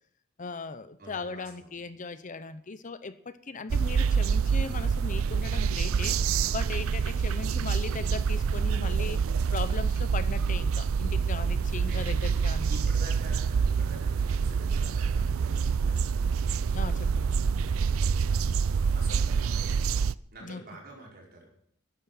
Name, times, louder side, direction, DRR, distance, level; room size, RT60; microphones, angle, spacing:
voice 1, 0.4-9.2 9.5-12.7 16.7-17.3 20.4-20.6, left 4 dB, 40° left, 12 dB, 0.7 m, -38 dB
voice 2, 1.0-1.7 11.7-12.3 12.6-16.3 18.0-18.4 18.9-19.8 20.3-21.5, right 2 dB, 50° right, -1 dB, 5.1 m, -48 dB
sound 1, 3.7-20.1, right 6 dB, 80° right, 0.4 m, -26 dB
13.0 x 9.7 x 7.7 m, 0.68 s
head